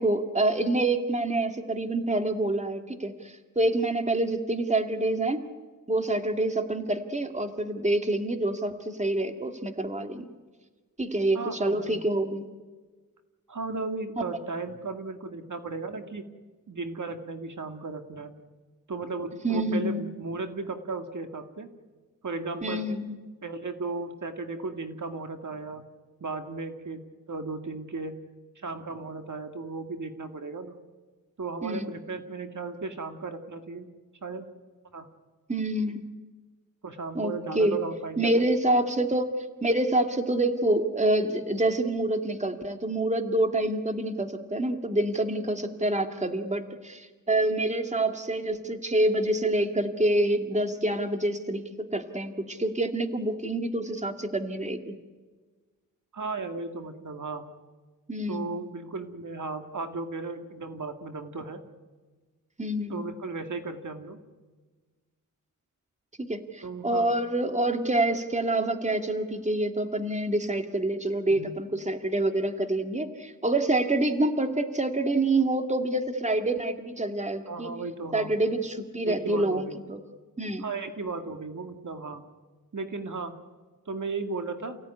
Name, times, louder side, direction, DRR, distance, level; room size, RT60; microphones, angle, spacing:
voice 1, 0.0-5.4 5.9-10.3 11.0-12.5 19.4-20.0 22.6-23.1 31.6-31.9 35.5-36.1 37.1-37.8 38.2-39.3 39.6-51.6 51.9-54.9 58.1-58.5 62.6-63.1 66.3-77.8 78.1-80.0 80.4-80.6, right 1 dB, 20° right, 6 dB, 2.2 m, -27 dB
voice 2, 11.3-12.0 13.5-16.3 16.7-18.3 18.9-21.7 22.2-22.9 23.4-25.8 26.2-28.2 28.6-30.7 31.4-33.9 34.2-34.5 34.9-35.1 36.8-38.4 56.1-57.5 58.3-61.6 62.9-64.2 66.6-67.1 71.3-71.5 77.5-78.3 79.1-79.8 80.6-82.2 82.7-83.4 83.9-84.8, right 3 dB, 60° right, 6 dB, 2.1 m, -35 dB
29.0 x 17.0 x 9.9 m, 1.4 s
wide cardioid pair, 75°, 34 cm